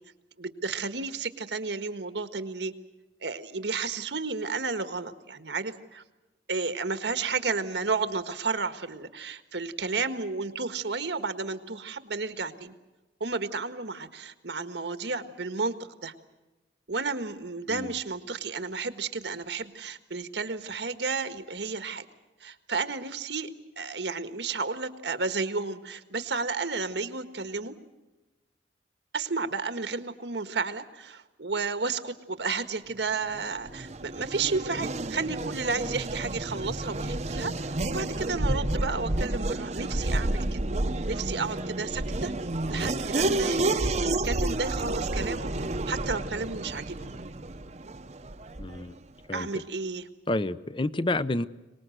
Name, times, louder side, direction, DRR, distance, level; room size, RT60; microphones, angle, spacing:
voice 1, 0.4-2.7 3.2-6.0 6.5-12.7 13.2-15.8 16.0-16.1 16.9-22.1 22.4-23.5 23.8-27.8 29.1-40.6 41.1-42.3 42.7-45.5 45.9-47.1 49.3-50.1, right 4 dB, 80° right, 10 dB, 1.6 m, -32 dB
Race car auto racing / Accelerating revving vroom, 33.3-48.9, right 2 dB, 40° right, 0.9 m, -30 dB
voice 2, 48.6-48.9 49.3-49.5 50.3-51.5, left 2 dB, 30° left, 15 dB, 0.7 m, -29 dB
24.5 x 19.5 x 7.9 m, 1.1 s
head